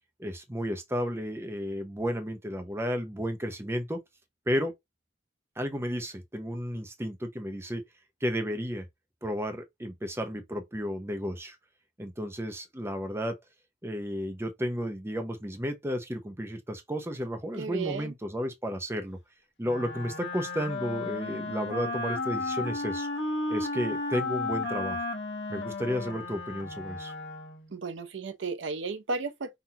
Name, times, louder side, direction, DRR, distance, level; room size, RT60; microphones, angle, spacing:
voice 1, 0.2-4.0 4.5-4.7 5.6-7.8 8.2-8.8 9.2-11.6 12.0-13.4 13.8-19.2 19.6-23.1 23.5-25.0 25.5-27.1, equal, 15° right, 0.8 m, -33 dB
voice 2, 17.6-18.1 27.7-29.6, right 4 dB, 90° right, 0.7 m, -34 dB
Wind instrument woodwind instrument, 19.6-27.7, left 2 dB, 70° left, 1.4 m, -34 dB
5.7 x 2.6 x 2.9 m
head